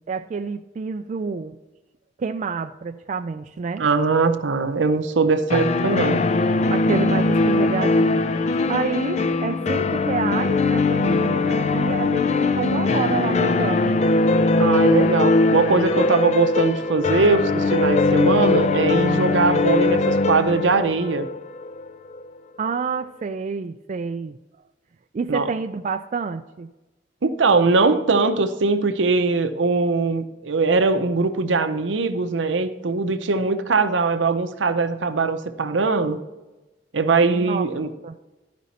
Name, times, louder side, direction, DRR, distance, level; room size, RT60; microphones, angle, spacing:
voice 1, 0.1-1.6 2.2-3.8 6.7-8.3 8.7-12.3 12.6-13.9 22.6-24.4 25.1-26.7 37.3-37.7 38.0-38.1, right 5 dB, 40° right, 7 dB, 0.3 m, -28 dB
voice 2, 3.8-6.2 14.6-21.3 25.3-25.5 27.2-36.2 36.9-37.9, right 4 dB, 75° right, 9 dB, 0.7 m, -21 dB
sound 1, 5.5-22.2, left 3 dB, 35° left, 0.4 m, -20 dB
12.5 x 5.2 x 4.1 m, 1.1 s
head